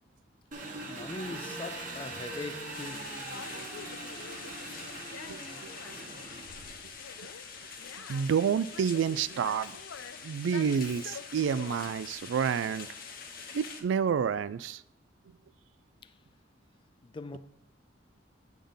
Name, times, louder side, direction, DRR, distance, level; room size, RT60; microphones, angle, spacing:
Engine, 0.5-7.0, right 2 dB, 45° right, 1.2 m, -42 dB
voice 1, 0.8-3.3 16.0-16.1 17.0-17.4, left 3 dB, 25° left, 0.4 m, -41 dB
Conversation, 1.7-13.7, left 6 dB, 90° left, 0.4 m, -49 dB
sound 1, 2.7-13.8, left 6 dB, 50° left, 1.0 m, -45 dB
voice 2, 5.3-5.7 8.1-9.8 10.2-12.9 13.5-14.8, right 7 dB, 75° right, 0.3 m, -29 dB
8.7 x 3.6 x 5.5 m
head